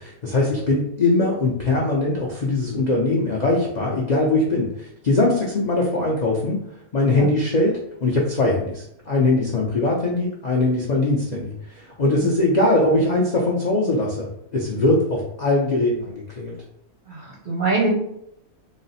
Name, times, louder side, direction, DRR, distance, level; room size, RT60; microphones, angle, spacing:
voice 1, 0.0-6.6 6.9-16.6, left 2 dB, 65° left, -3 dB, 0.4 m, -21 dB
voice 2, 17.1-17.9, right 3 dB, 45° right, -2 dB, 0.7 m, -24 dB
4.0 x 2.0 x 4.0 m, 0.78 s
omnidirectional pair, 1.5 m